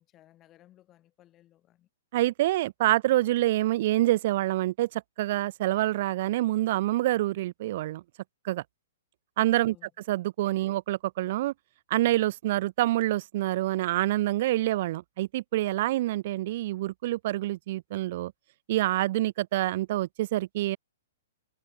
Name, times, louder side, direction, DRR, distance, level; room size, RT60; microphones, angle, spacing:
voice 1, 0.0-1.9 9.6-9.9, left 13 dB, 20° left, 3.3 m, -59 dB
voice 2, 2.1-8.0 8.4-8.6 9.4-9.8 10.1-11.5 11.9-18.3 18.7-20.8, right 16 dB, 40° right, 0.3 m, -26 dB
hypercardioid pair, 165°, 0 cm